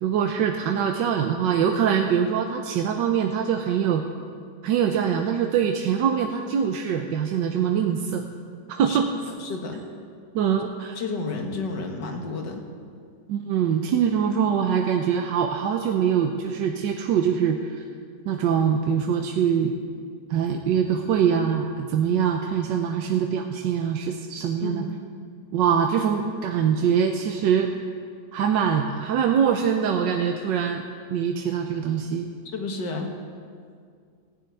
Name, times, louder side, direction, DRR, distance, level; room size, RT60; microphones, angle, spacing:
voice 1, 0.0-4.0 4.6-8.3 8.7-9.1 10.3-11.0 13.3-17.8 18.3-19.7 20.3-24.8 25.5-27.7 28.3-30.9 31.1-32.3, right 8 dB, 90° right, 4 dB, 1.4 m, -23 dB
voice 2, 9.3-9.8 11.0-12.7 24.6-24.9 32.5-33.1, left 3 dB, 75° left, 3 dB, 2.1 m, -31 dB
15.5 x 7.6 x 9.2 m, 2.2 s
omnidirectional pair, 1.9 m